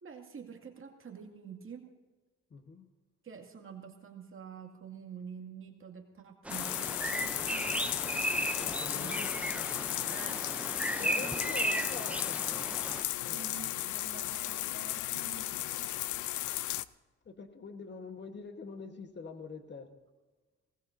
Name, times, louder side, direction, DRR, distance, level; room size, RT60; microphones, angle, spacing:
voice 1, 0.0-1.9 3.2-7.8 8.9-9.3 10.1-10.5 11.0-11.4 13.3-15.5, right 6 dB, 45° right, 2 dB, 2.3 m, -48 dB
voice 2, 2.5-2.9 8.6-9.4 11.0-12.4 13.2-13.6 17.2-20.0, left 4 dB, 35° left, 6 dB, 1.3 m, -45 dB
Bird vocalization bird call bird song, 6.4-13.0, right 1 dB, 5° right, 0.6 m, -35 dB
sound 1, 6.5-16.8, left 15 dB, 80° left, 0.5 m, -35 dB
20.0 x 18.5 x 2.7 m, 1.3 s
cardioid pair, 90°, 30 cm